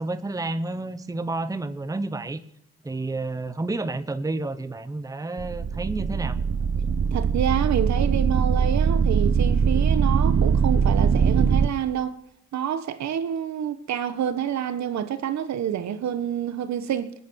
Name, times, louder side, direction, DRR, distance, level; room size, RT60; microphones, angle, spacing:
voice 1, 0.0-2.4 2.8-6.4, right 2 dB, 10° right, 1.0 m, -30 dB
sound 1, 5.4-11.7, right 6 dB, 45° right, 1.0 m, -21 dB
voice 2, 7.1-12.2 12.5-17.1, right 9 dB, 65° right, 1.3 m, -27 dB
20.0 x 9.7 x 6.4 m
cardioid pair, 90°, 30 cm